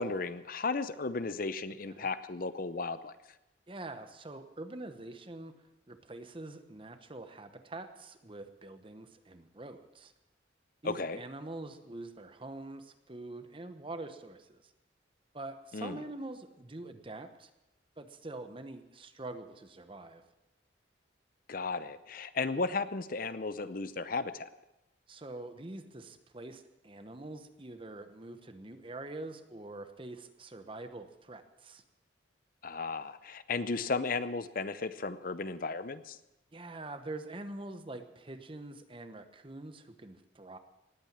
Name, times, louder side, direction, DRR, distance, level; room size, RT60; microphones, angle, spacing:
voice 1, 0.0-3.1 10.8-11.2 15.7-16.0 21.5-24.5 32.6-36.2, left 4 dB, 45° left, 13 dB, 0.6 m, -34 dB
voice 2, 3.7-10.1 10.8-14.7 15.3-17.5 18.0-20.2 25.1-31.8 36.5-40.6, right 2 dB, 25° right, 9 dB, 1.0 m, -45 dB
19.0 x 8.9 x 7.4 m, 0.94 s
head